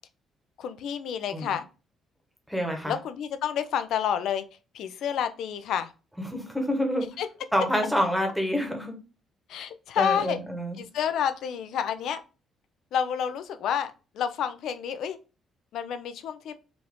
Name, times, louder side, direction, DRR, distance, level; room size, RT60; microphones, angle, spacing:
voice 1, 0.6-1.6 2.9-4.4 4.7-5.9 7.2-7.3 9.5-10.4 10.7-12.2 12.9-15.2 15.7-16.5, left 8 dB, 70° left, 10 dB, 0.5 m, -29 dB
voice 2, 2.5-2.9 6.2-7.1 7.5-8.9 10.0-10.8, equal, ahead, 3 dB, 1.0 m, -27 dB
4.8 x 2.6 x 3.5 m, 0.33 s
cardioid pair, 140°, 0 cm